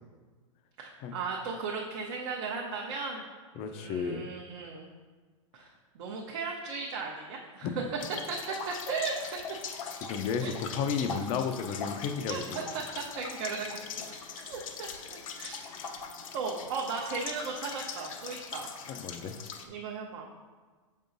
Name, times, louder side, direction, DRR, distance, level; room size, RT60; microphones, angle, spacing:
voice 1, 0.8-3.2 3.5-4.9 5.5-5.7 5.9-7.7 8.3-8.4 8.7-9.2 10.4-10.5 12.3-12.4 12.7-13.8 14.5-15.6 16.3-18.7 19.7-20.3, right 4 dB, 50° right, -2 dB, 0.8 m, -36 dB
voice 2, 3.6-4.3 7.6-7.8 9.9-12.7 18.9-19.4, left 6 dB, 35° left, 8 dB, 0.5 m, -33 dB
sound 1, 8.0-19.7, left 6 dB, 75° left, 0.7 m, -41 dB
6.9 x 5.4 x 2.6 m, 1.4 s
hypercardioid pair, 135°, 17 cm